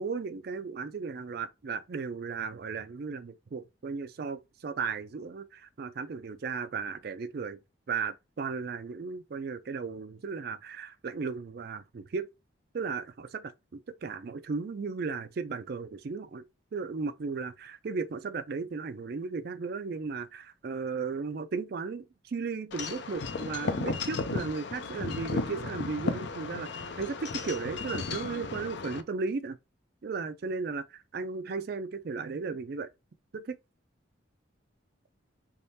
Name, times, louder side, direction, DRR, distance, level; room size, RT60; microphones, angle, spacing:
voice 1, 0.0-7.6 7.9-12.3 12.7-16.4 16.7-29.6 30.0-32.9 33.3-33.6, right 4 dB, 50° right, 0.4 m, -35 dB
Wind chime / Wind, 22.7-29.0, left 4 dB, 55° left, 0.5 m, -34 dB
3.5 x 3.1 x 2.7 m
head